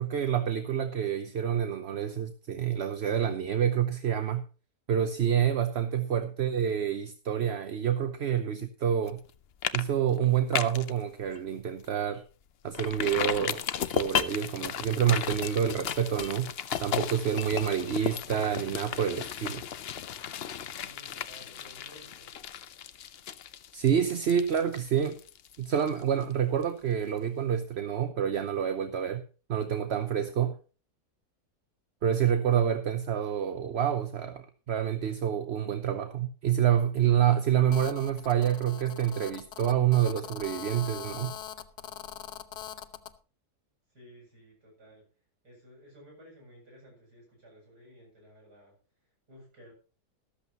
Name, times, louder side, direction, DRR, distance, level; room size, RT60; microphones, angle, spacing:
voice 1, 0.0-4.4 4.9-9.2 9.7-12.2 12.6-16.5 16.8-19.6 23.7-25.2 25.6-29.2 29.5-30.6 32.0-41.3, right 9 dB, 50° right, 0.9 m, -28 dB
voice 2, 5.3-5.6 20.8-22.4 43.9-45.1 45.4-48.8 49.0-49.7, equal, 85° right, 8.2 m, -55 dB
sound 1, 9.1-9.3 9.6-9.8 10.1-10.9 11.3-11.4 11.8-11.9 12.7-26.3 26.6-26.7, left 9 dB, 55° left, 0.7 m, -35 dB
Telephone, 37.7-43.1, left 10 dB, 80° left, 1.5 m, -42 dB
14.0 x 13.0 x 3.0 m
omnidirectional pair, 1.7 m